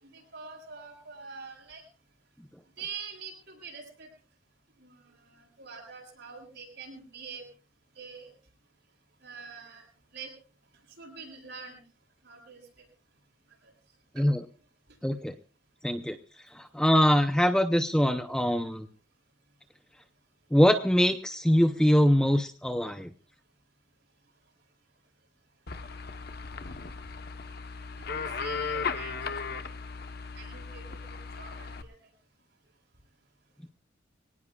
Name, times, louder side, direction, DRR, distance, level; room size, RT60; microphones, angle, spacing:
voice 1, 0.0-1.8 2.8-4.1 4.8-7.4 8.0-8.3 9.2-9.8 10.1-10.3 11.0-11.8 12.2-12.6 14.2-14.3 28.1-29.7 30.3-30.8 31.1-32.0, right 5 dB, 55° right, 1 dB, 7.6 m, -45 dB
voice 2, 15.0-15.3 15.8-16.2 16.5-18.9 20.5-23.1 33.6-33.7, equal, 5° left, 7 dB, 0.6 m, -23 dB
sound 1, 25.7-31.8, left 5 dB, 50° left, 1.0 m, -36 dB
25.0 x 18.5 x 2.4 m, 0.37 s
head